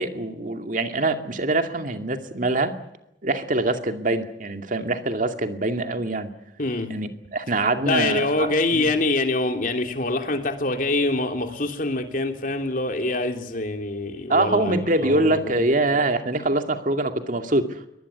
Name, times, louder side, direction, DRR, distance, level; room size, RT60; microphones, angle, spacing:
voice 1, 0.0-2.7 3.2-6.3 6.9-8.9 14.3-17.7, right 2 dB, 45° right, 7 dB, 2.4 m, -24 dB
voice 2, 6.6-7.0 7.8-15.6, left 2 dB, 45° left, 5 dB, 3.1 m, -25 dB
23.5 x 20.0 x 8.2 m, 0.83 s
head